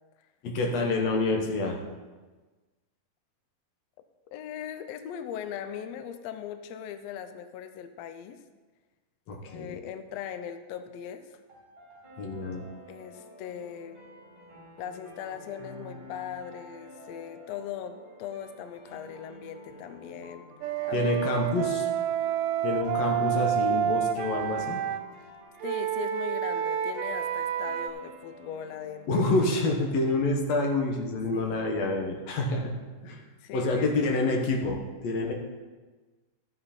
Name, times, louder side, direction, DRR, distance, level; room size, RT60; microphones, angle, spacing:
voice 1, 0.4-1.8 9.3-9.8 12.2-12.6 20.9-21.8 22.6-24.8 29.1-32.7 33.0-33.2 33.5-35.3, left 2 dB, 60° left, 1 dB, 2.3 m, -27 dB
voice 2, 4.3-8.4 9.4-11.4 12.9-14.0 14.8-20.5 20.8-21.8 25.6-29.1 31.3-31.7 33.4-34.3, left 9 dB, 90° left, 9 dB, 1.4 m, -40 dB
sound 1, 11.5-30.4, equal, 15° right, 3.8 m, -50 dB
Wind instrument woodwind instrument, 20.6-25.0 25.6-27.9, right 10 dB, 85° right, 2.1 m, -29 dB
13.0 x 7.8 x 4.4 m, 1.3 s
omnidirectional pair, 3.7 m